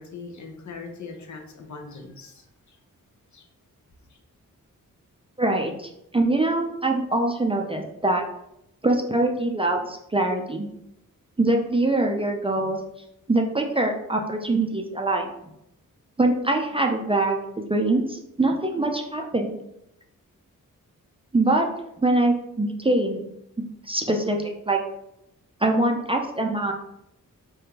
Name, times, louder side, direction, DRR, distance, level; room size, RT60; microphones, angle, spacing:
voice 1, 0.0-2.8 3.3-3.5 4.1-4.2, left 4 dB, 55° left, 3 dB, 0.7 m, -41 dB
voice 2, 5.4-8.2 8.8-10.7 11.4-12.8 13.3-15.3 16.2-19.6 21.3-21.7 22.0-23.3 23.6-24.8 25.6-26.7, right 2 dB, 15° right, 2 dB, 0.4 m, -23 dB
3.5 x 2.3 x 2.8 m, 0.81 s
cardioid pair, 50°, 34 cm